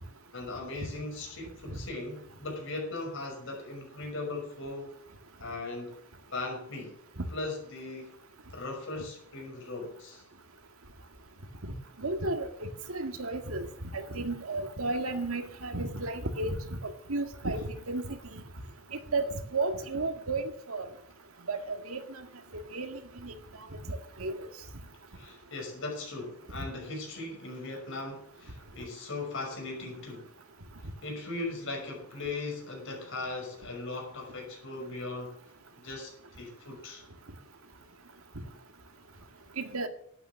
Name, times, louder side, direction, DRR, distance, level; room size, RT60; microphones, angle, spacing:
voice 1, 0.3-4.9 5.4-5.9 6.3-6.9 7.3-8.2 8.5-10.2 25.1-30.3 31.0-35.4 35.8-37.0, left 2 dB, 60° left, 1 dB, 5.8 m, -38 dB
voice 2, 12.0-13.7 13.9-16.6 16.8-18.4 19.1-19.2 19.5-20.9 21.5-22.2 22.7-23.3 23.9-24.5 38.4-38.5 39.6-39.9, right 2 dB, 75° right, 6 dB, 1.8 m, -33 dB
12.0 x 9.3 x 7.2 m, 0.68 s
head